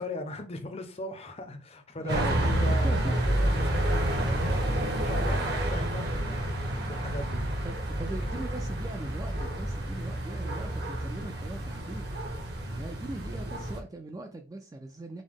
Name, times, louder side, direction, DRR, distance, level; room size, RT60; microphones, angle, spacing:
voice 1, 0.0-4.4 4.9-7.4, left 2 dB, 30° left, 0.6 m, -39 dB
voice 2, 2.0-3.2 5.2-5.5 7.6-12.1 12.7-15.2, right 2 dB, 15° right, 0.3 m, -40 dB
sound 1, 2.1-13.8, right 1 dB, 50° right, 0.9 m, -29 dB
5.1 x 2.1 x 3.6 m
head